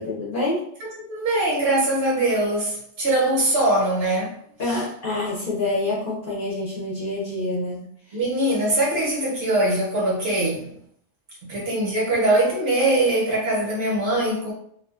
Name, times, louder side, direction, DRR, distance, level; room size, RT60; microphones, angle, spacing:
voice 1, 0.0-0.7 4.6-7.9, left 2 dB, 50° left, -6 dB, 0.8 m, -27 dB
voice 2, 0.8-4.3 4.7-4.8 8.1-10.7 11.4-14.5, right 1 dB, 60° right, -3 dB, 0.9 m, -22 dB
2.4 x 2.3 x 2.3 m, 0.67 s
omnidirectional pair, 1.3 m